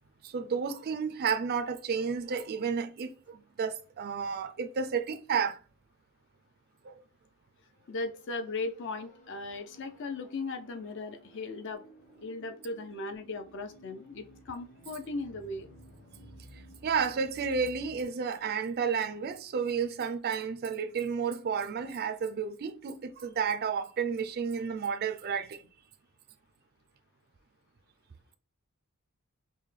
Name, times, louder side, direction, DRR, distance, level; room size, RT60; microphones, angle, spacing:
voice 1, 0.2-5.6 6.8-6.9 16.8-25.6, right 6 dB, 45° right, 0.4 m, -31 dB
sound 1, 7.7-18.0, equal, 35° left, 1.1 m, -55 dB
voice 2, 7.9-11.8 12.2-15.7, left 3 dB, 55° left, 0.5 m, -37 dB
5.3 x 2.2 x 3.2 m
head